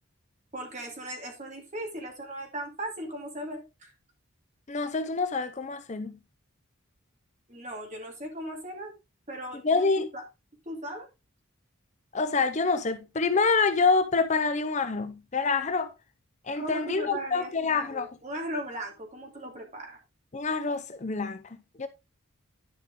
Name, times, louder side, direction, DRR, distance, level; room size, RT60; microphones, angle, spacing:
voice 1, 0.5-3.9 7.5-8.9 9.3-9.8 10.1-10.2 10.6-11.1 16.6-20.0, right 1 dB, 35° right, 2.7 m, -37 dB
voice 2, 4.7-6.2 9.6-10.0 12.1-15.9 16.4-18.1 20.3-21.9, left 4 dB, 35° left, 0.5 m, -27 dB
11.0 x 5.2 x 3.6 m
head